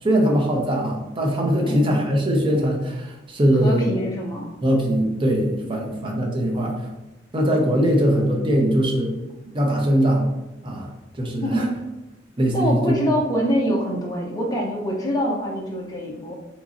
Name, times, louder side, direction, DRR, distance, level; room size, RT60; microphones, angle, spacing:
voice 1, 0.0-4.0 4.6-6.9 7.3-9.1 9.5-10.3 10.6-10.9 11.2-11.7 12.4-12.9, equal, 25° right, 0 dB, 0.6 m, -21 dB
voice 2, 1.7-2.0 3.6-4.5 5.8-6.0 11.4-11.8 12.5-16.3, equal, 20° left, -2 dB, 0.5 m, -25 dB
3.8 x 3.0 x 2.5 m, 1.0 s
head